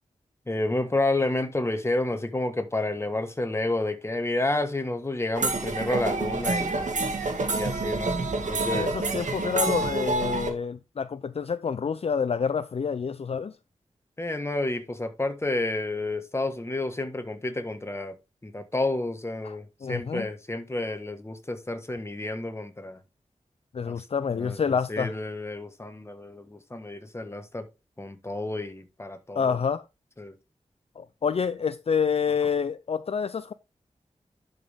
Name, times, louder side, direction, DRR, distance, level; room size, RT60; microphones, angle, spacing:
voice 1, 0.5-6.9 7.5-8.2 8.5-8.9 14.2-18.1 18.4-23.0 23.9-24.0 24.3-24.6 24.9-27.7 28.0-29.6 30.2-30.4, left 2 dB, 20° left, 1.4 m, -30 dB
sound 1, 5.3-10.5, right 3 dB, 80° right, 1.8 m, -28 dB
voice 2, 8.7-13.6 19.4-20.3 23.7-25.1 29.4-29.8 31.0-33.5, left 6 dB, 55° left, 0.4 m, -28 dB
11.0 x 5.4 x 3.5 m
wide cardioid pair, 95°, 13 cm